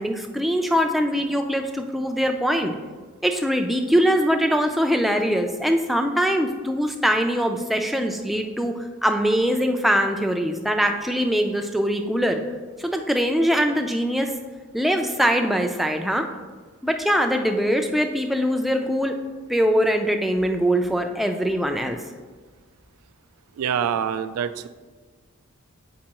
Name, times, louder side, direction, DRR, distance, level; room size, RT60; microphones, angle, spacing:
voice 1, 0.0-2.7 3.2-8.7 9.0-12.4 12.8-14.3 14.7-16.3 16.8-19.2 19.5-22.0, equal, ahead, 3 dB, 0.3 m, -22 dB
voice 2, 23.6-24.7, right 8 dB, 85° right, 12 dB, 0.3 m, -25 dB
7.4 x 5.3 x 2.9 m, 1.4 s
head